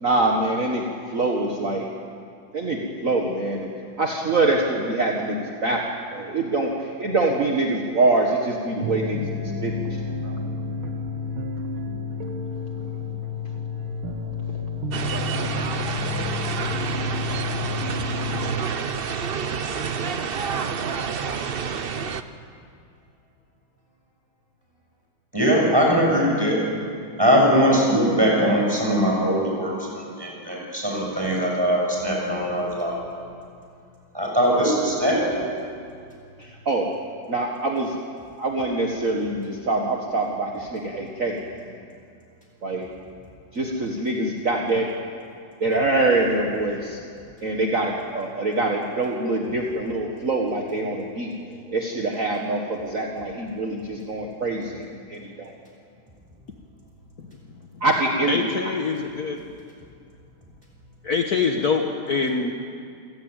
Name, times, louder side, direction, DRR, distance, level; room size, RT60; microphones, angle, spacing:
voice 1, 0.0-1.9 2.5-3.7 4.0-5.8 6.1-10.3 36.4-36.9 37.3-38.0 38.4-41.8 42.6-42.9 43.5-44.9 45.6-47.0 47.4-54.8 55.1-55.5 57.8-58.5, right 2 dB, 40° right, 0 dB, 1.9 m, -24 dB
sound 1, 8.8-18.5, left 4 dB, 90° right, 2.3 m, -30 dB
sound 2, 14.9-22.2, right 6 dB, 60° right, 0.5 m, -28 dB
voice 2, 25.3-26.6 27.2-33.0 34.1-35.5, equal, 10° right, -2 dB, 6.7 m, -21 dB
voice 3, 58.3-59.4 61.0-62.5, left 5 dB, 50° left, 3 dB, 1.6 m, -24 dB
28.0 x 16.0 x 9.0 m, 2.4 s
omnidirectional pair, 2.2 m